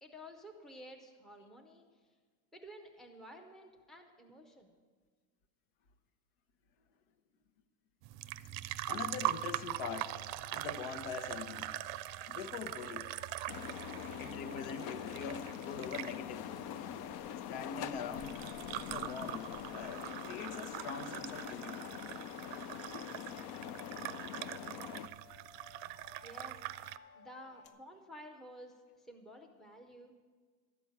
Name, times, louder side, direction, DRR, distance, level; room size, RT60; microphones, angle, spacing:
voice 1, 0.0-1.8 2.5-4.7 26.2-26.8 27.1-30.1, equal, ahead, 3 dB, 0.6 m, -52 dB
sound 1, 8.0-27.0, right 16 dB, 70° right, 0.6 m, -43 dB
voice 2, 8.9-11.9 12.3-13.1 14.2-16.5 17.5-18.4 18.8-21.9 26.9-27.2, left 6 dB, 80° left, 7 dB, 1.1 m, -43 dB
sound 2, 9.5-27.7, left 4 dB, 30° left, 1.0 m, -59 dB
sound 3, 13.5-25.1, left 10 dB, 55° left, 0.5 m, -44 dB
12.5 x 6.1 x 9.4 m, 1.5 s
cardioid pair, 175°, 47 cm